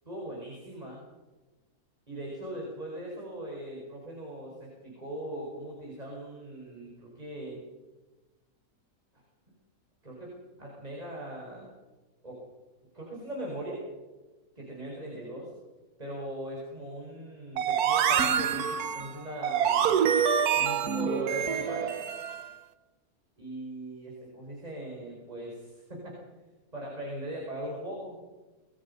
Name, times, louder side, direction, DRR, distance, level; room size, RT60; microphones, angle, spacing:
voice 1, 0.1-1.1 2.1-7.6 9.1-9.2 10.0-11.7 12.2-12.4 12.9-13.8 14.6-15.5 16.0-20.1 20.5-21.9 23.4-26.2 26.7-28.2, right 1 dB, 25° right, -3 dB, 5.4 m, -40 dB
sound 1, 17.6-22.5, right 8 dB, 75° right, 1.5 m, -26 dB
26.5 x 20.0 x 5.5 m, 1.2 s
omnidirectional pair, 1.6 m